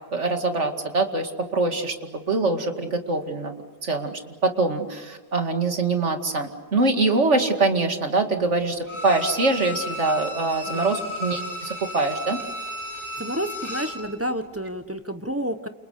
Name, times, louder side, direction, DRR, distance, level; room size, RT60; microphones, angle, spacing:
voice 1, 0.1-12.4, right 3 dB, 45° right, 5 dB, 2.5 m, -24 dB
Bowed string instrument, 8.9-14.1 14.4-14.5, left 1 dB, 15° left, 6.9 m, -34 dB
voice 2, 13.2-15.7, equal, 10° right, 8 dB, 0.8 m, -30 dB
29.0 x 28.5 x 6.7 m, 1.3 s
omnidirectional pair, 1.8 m